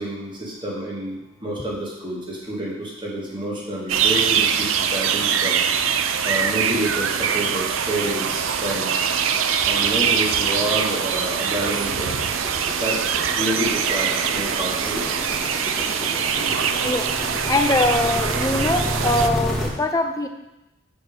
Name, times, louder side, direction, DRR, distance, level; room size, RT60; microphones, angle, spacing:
voice 1, 0.0-5.6 6.2-9.1 9.6-12.2 12.8-15.1, right 1 dB, 25° right, -4 dB, 1.5 m, -29 dB
sound 1, 3.9-19.3, right 7 dB, 75° right, 0.4 m, -23 dB
sound 2, 5.2-19.7, equal, ahead, 1.3 m, -32 dB
voice 2, 17.5-20.3, left 2 dB, 15° left, 5 dB, 0.5 m, -22 dB
6.6 x 4.3 x 4.9 m, 0.93 s
head